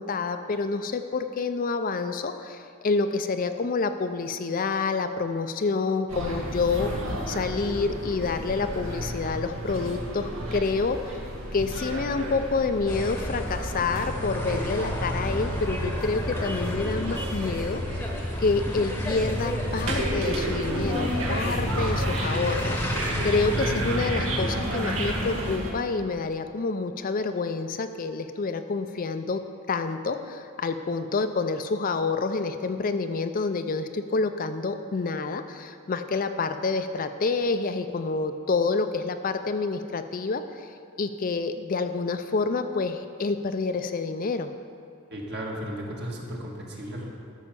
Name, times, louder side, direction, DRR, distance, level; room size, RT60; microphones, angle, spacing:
voice 1, 0.0-6.9 7.3-11.2 11.5-18.1 18.4-29.4 29.7-40.7 41.0-44.5, left 4 dB, 40° left, 8 dB, 0.5 m, -28 dB
sound 1, 6.1-25.7, right 1 dB, 85° right, 1.8 m, -33 dB
sound 2, 12.9-25.6, equal, 10° left, 1.0 m, -31 dB
voice 2, 45.1-47.1, equal, 50° right, -2 dB, 1.8 m, -35 dB
13.0 x 5.4 x 6.8 m, 2.3 s
head